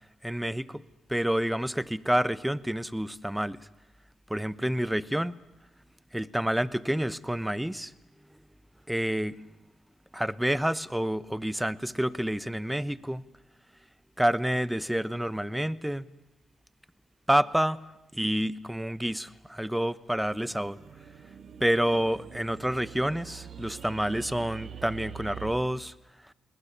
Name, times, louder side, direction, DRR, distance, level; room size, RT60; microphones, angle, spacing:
voice 1, 0.2-0.8 1.1-3.6 4.3-5.3 6.1-7.9 8.9-9.4 10.1-13.2 14.2-16.1 17.3-17.8 18.1-20.8 21.6-25.9 26.3-26.4, equal, 5° right, 19 dB, 1.0 m, -28 dB
sound 1, 20.2-25.5, right 8 dB, 60° right, 2.0 m, -45 dB
20.5 x 20.0 x 9.9 m, 0.94 s
supercardioid pair, 60°, 0 cm